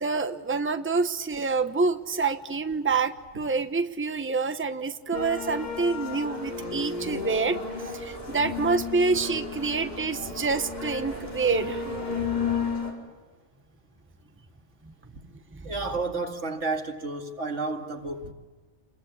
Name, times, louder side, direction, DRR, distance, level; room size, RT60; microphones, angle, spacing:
voice 1, 0.0-7.6 7.9-12.0 15.5-15.6, right 4 dB, 10° right, 0.9 m, -27 dB
sound 1, 5.1-12.9, left 5 dB, 35° left, 4.9 m, -33 dB
voice 2, 15.6-18.3, right 3 dB, 90° right, 2.5 m, -31 dB
29.0 x 22.0 x 8.4 m
omnidirectional pair, 1.2 m